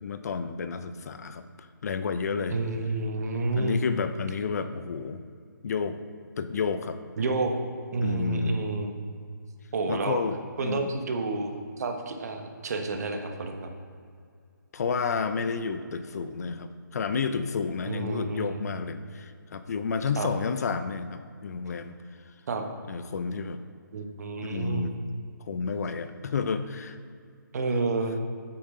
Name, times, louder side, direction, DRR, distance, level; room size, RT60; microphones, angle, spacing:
voice 1, 0.0-2.6 3.6-5.2 5.6-6.0 6.4-7.0 8.0-8.6 9.9-10.9 14.7-22.0 22.9-23.6 24.4-24.9 25.5-27.0, left 5 dB, 50° left, 10 dB, 0.6 m, -31 dB
voice 2, 2.5-3.8 7.2-7.5 7.9-8.9 9.7-10.2 10.6-13.7 17.9-18.6 20.2-20.3 22.5-22.6 23.9-24.9 27.5-28.1, right 3 dB, 50° right, 4 dB, 1.3 m, -29 dB
9.8 x 8.7 x 3.8 m, 2.3 s
figure-of-eight pair, 150°, 11 cm